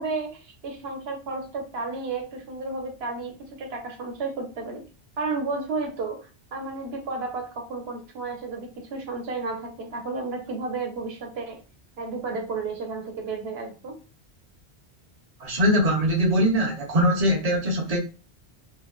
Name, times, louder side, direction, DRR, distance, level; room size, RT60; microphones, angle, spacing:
voice 1, 0.0-4.8 5.2-11.6 12.0-14.0, right 3 dB, 70° right, 1.0 m, -32 dB
voice 2, 15.4-18.0, equal, 40° right, 0.6 m, -22 dB
2.9 x 2.2 x 2.3 m
omnidirectional pair, 1.1 m